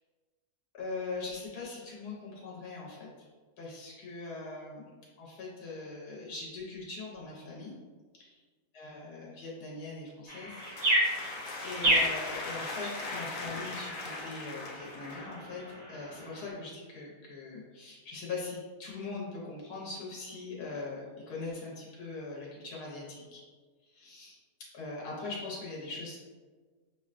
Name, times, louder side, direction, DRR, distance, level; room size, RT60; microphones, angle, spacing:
voice 1, 0.7-3.1 3.6-4.9 5.2-7.8 8.1-8.3 8.7-10.6 11.6-23.4 23.9-24.4 24.7-26.2, left 3 dB, 85° left, -5 dB, 1.3 m, -41 dB
sound 1, 10.3-15.4, left 3 dB, 60° left, 0.5 m, -40 dB
sound 2, 10.3-16.5, right 1 dB, 40° right, 1.7 m, -32 dB
5.8 x 2.1 x 2.5 m, 1.4 s
omnidirectional pair, 1.6 m